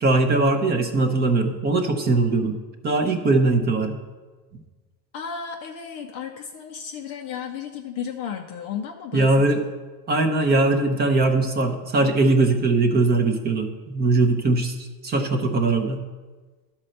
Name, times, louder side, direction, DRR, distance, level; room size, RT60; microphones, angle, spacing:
voice 1, 0.0-2.6 2.8-4.0 9.1-9.6 10.1-16.0, right 3 dB, 20° right, 5 dB, 0.6 m, -21 dB
voice 2, 5.1-9.6, left 7 dB, 35° left, 3 dB, 0.4 m, -34 dB
12.0 x 4.4 x 6.4 m, 1.3 s
supercardioid pair, 150°, 49 cm